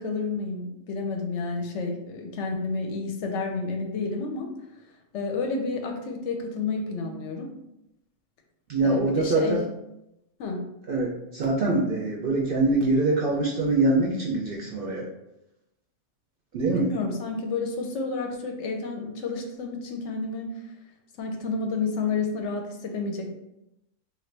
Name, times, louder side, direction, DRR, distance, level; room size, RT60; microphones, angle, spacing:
voice 1, 0.0-4.5 5.1-7.5 8.8-9.6 10.4-10.6 16.6-20.5 21.2-23.3, left 4 dB, 70° left, 3 dB, 0.8 m, -30 dB
voice 2, 8.7-9.6 10.9-15.0 16.5-16.9, right 2 dB, 60° right, -2 dB, 0.6 m, -24 dB
3.0 x 2.5 x 3.2 m, 0.87 s
omnidirectional pair, 1.3 m